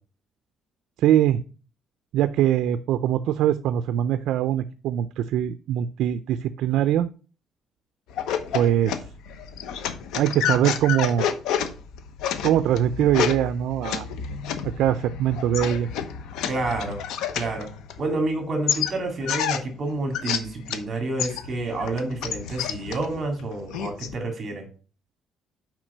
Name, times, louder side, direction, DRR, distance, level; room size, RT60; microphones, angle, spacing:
voice 1, 1.0-1.4 2.1-7.1 8.5-9.0 10.1-11.3 12.4-14.1 14.6-15.9, right 11 dB, 75° right, 12 dB, 0.4 m, -22 dB
sound 1, 8.1-18.3 18.7-20.9 21.2-24.2, left 8 dB, 85° left, 0.9 m, -30 dB
voice 2, 16.5-17.0 17.3-17.7 18.0-24.7, right 2 dB, 35° right, 4 dB, 2.2 m, -29 dB
6.0 x 5.0 x 6.6 m, 0.37 s
cardioid pair, 160°, 0 cm